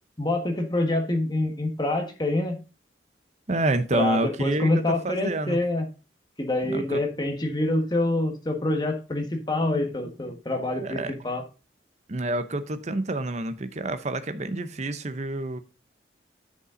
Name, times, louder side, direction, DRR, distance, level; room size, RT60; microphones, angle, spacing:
voice 1, 0.2-2.6 3.9-5.9 6.4-11.4, left 2 dB, 25° left, 1.4 m, -26 dB
voice 2, 3.5-4.7 5.0-5.6 6.7-7.0 10.8-11.1 12.1-15.6, right 2 dB, 35° right, 0.7 m, -28 dB
9.8 x 5.3 x 3.8 m
head